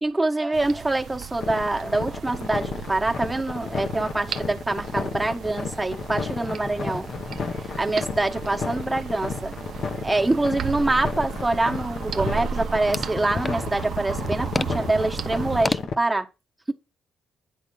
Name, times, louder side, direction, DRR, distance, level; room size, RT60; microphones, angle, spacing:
voice 1, 0.0-7.1 7.6-9.6 10.0-16.3, right 2 dB, 10° right, 1.1 m, -25 dB
sound 1, 0.5-15.7, right 7 dB, 65° right, 0.6 m, -35 dB
sound 2, 0.6-0.7 1.1-1.2 1.4-1.5 2.1-5.2 5.5-15.8, left 3 dB, 25° left, 0.4 m, -36 dB
sound 3, 1.4-15.9, left 5 dB, 60° left, 0.9 m, -32 dB
9.3 x 3.6 x 6.3 m
cardioid pair, 90°, 0 cm